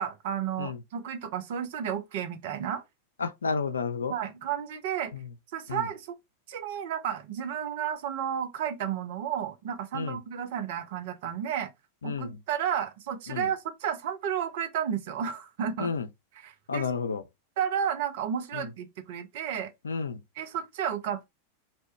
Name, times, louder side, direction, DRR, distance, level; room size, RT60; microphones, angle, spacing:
voice 1, 0.0-2.8 4.1-5.1 5.5-6.2 6.5-11.7 12.0-15.9 16.4-16.9 17.6-19.7 20.4-21.2, right 8 dB, 50° right, 0.6 m, -32 dB
voice 2, 3.2-4.1 5.1-5.3 5.7-5.9 9.9-10.2 12.0-12.4 13.3-13.5 15.8-16.1 16.7-17.2 18.5-18.7 19.8-20.2, left 5 dB, 70° left, 0.4 m, -31 dB
2.7 x 2.2 x 3.3 m
figure-of-eight pair, 90°, 0 cm